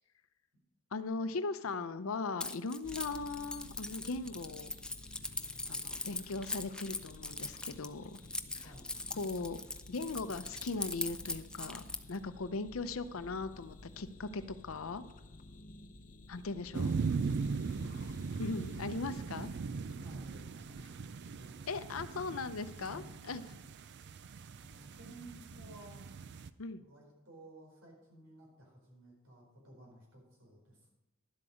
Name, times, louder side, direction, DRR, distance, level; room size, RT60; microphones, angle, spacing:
voice 1, 0.9-4.7 5.7-8.2 8.5-8.6 9.2-9.6 9.9-11.8 12.1-15.0 16.3-16.9 18.4-19.5 21.7-23.4 26.6-26.8, left 3 dB, 75° left, 12 dB, 0.6 m, -39 dB
Keys jangling, 2.4-12.2, left 2 dB, 5° left, 0.4 m, -41 dB
sound 1, 2.8-18.8, left 2 dB, 40° left, 0.7 m, -54 dB
voice 2, 8.6-9.0 15.7-16.0 16.5-16.9 18.9-21.6 22.8-23.4 24.6-26.0 26.8-30.9, right 1 dB, 85° right, -1 dB, 4.7 m, -56 dB
sound 2, 16.7-26.5, right 4 dB, 55° right, 0.4 m, -39 dB
11.5 x 7.8 x 5.0 m, 0.94 s
head